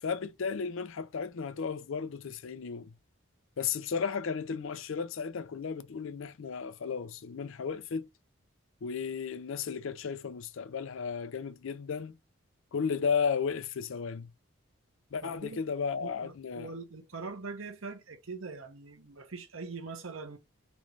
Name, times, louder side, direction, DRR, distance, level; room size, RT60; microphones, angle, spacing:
voice 1, 0.0-2.9 3.6-8.1 8.8-12.2 12.7-14.3 15.1-16.7, left 6 dB, 70° left, 0.4 m, -34 dB
voice 2, 15.2-15.6 16.0-20.4, right 4 dB, 70° right, 0.9 m, -42 dB
3.1 x 2.6 x 3.1 m
head